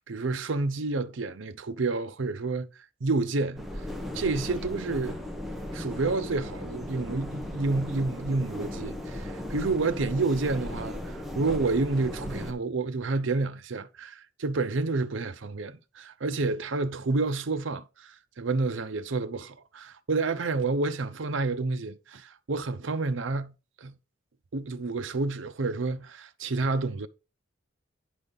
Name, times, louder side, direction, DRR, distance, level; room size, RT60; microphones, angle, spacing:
voice 1, 0.1-2.7 3.0-3.6 4.1-5.2 5.7-23.5 23.8-23.9 24.5-27.1, right 3 dB, 75° right, 0.7 m, -29 dB
sound 1, 3.6-12.5, left 1 dB, ahead, 1.2 m, -37 dB
9.8 x 5.2 x 4.0 m
head